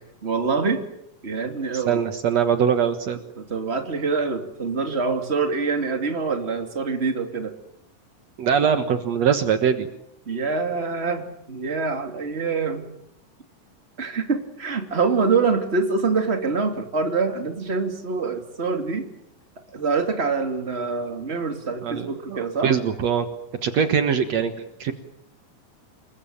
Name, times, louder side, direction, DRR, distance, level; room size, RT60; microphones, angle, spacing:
voice 1, 0.2-0.8 1.2-2.0 3.4-7.5 8.6-8.7 10.3-12.9 14.0-19.1 19.7-22.8, right 4 dB, 20° right, 6 dB, 2.8 m, -25 dB
voice 2, 1.9-3.2 8.4-9.9 21.8-22.4 22.6-23.3 23.6-24.5 24.8-24.9, right 7 dB, 65° right, 9 dB, 2.5 m, -22 dB
28.0 x 22.5 x 8.8 m, 0.75 s
omnidirectional pair, 3.4 m